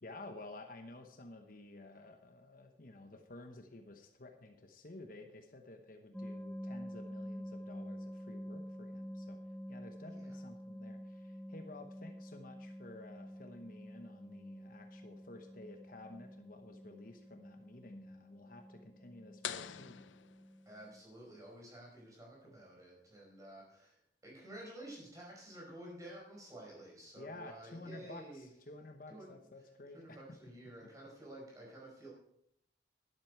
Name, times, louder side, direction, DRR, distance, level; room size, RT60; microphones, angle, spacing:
voice 1, 0.0-9.4 9.7-20.0 27.2-30.2, left 2 dB, 50° left, 5 dB, 1.0 m, -52 dB
sound 1, 6.1-21.0, equal, 5° left, 0.9 m, -48 dB
sound 2, 19.4-21.1, left 9 dB, 90° left, 0.6 m, -45 dB
voice 2, 20.6-24.0 24.2-28.5 29.1-29.3 29.9-32.1, right 1 dB, 20° right, -3 dB, 4.9 m, -51 dB
12.0 x 11.0 x 4.6 m, 0.75 s
head